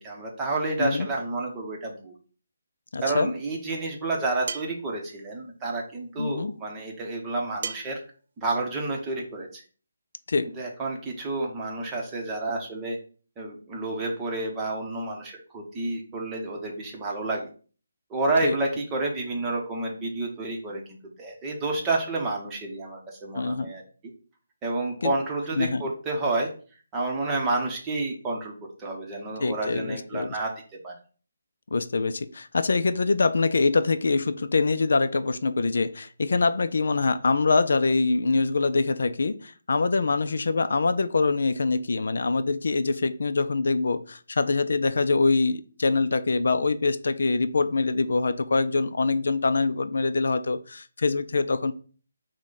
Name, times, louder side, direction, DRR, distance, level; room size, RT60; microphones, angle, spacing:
voice 1, 0.0-2.1 3.0-8.0 8.4-9.6 10.6-13.0 13.4-17.5 18.1-23.8 24.6-26.5 26.9-30.5 30.8-30.9, right 2 dB, 15° right, -1 dB, 0.8 m, -30 dB
voice 2, 2.9-3.3 6.2-6.5 10.3-10.5 18.4-18.6 23.3-23.7 25.0-25.1 25.6-25.8 29.4-30.4 31.7-51.7, left 3 dB, 70° left, 12 dB, 0.4 m, -24 dB
sound 1, 4.5-4.8 7.6-8.0, right 5 dB, 45° right, 0.4 m, -34 dB
6.0 x 2.2 x 3.9 m, 0.40 s
hypercardioid pair, 165°, 0 cm